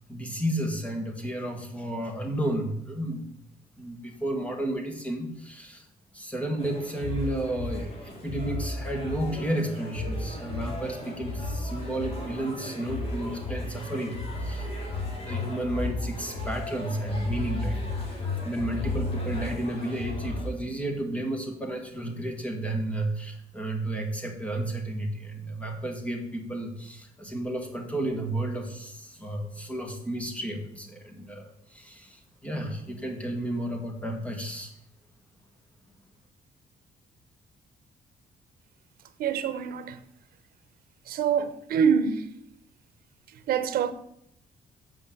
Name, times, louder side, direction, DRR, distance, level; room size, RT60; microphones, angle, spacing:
voice 1, 0.1-3.3 3.8-5.9 6.1-34.7, right 1 dB, 10° left, 1.6 m, -32 dB
sound 1, 6.6-20.5, left 2 dB, 40° left, 2.5 m, -34 dB
voice 2, 39.2-40.0 41.1-42.3 43.5-43.9, right 7 dB, 75° right, 0.9 m, -25 dB
8.2 x 5.4 x 7.7 m
cardioid pair, 165°, 15 cm